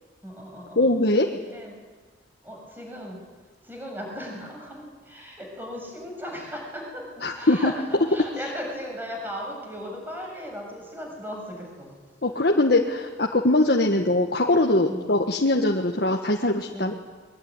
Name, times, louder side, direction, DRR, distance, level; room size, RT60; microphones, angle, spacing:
voice 1, 0.2-0.9 1.3-1.7 2.4-3.2 3.6-11.9 14.9-15.1 16.7-17.0, equal, 10° right, 0 dB, 7.1 m, -37 dB
voice 2, 0.7-1.3 7.2-7.7 12.2-16.9, left 2 dB, 60° left, 1 dB, 1.6 m, -22 dB
22.5 x 22.0 x 9.8 m, 1.4 s
head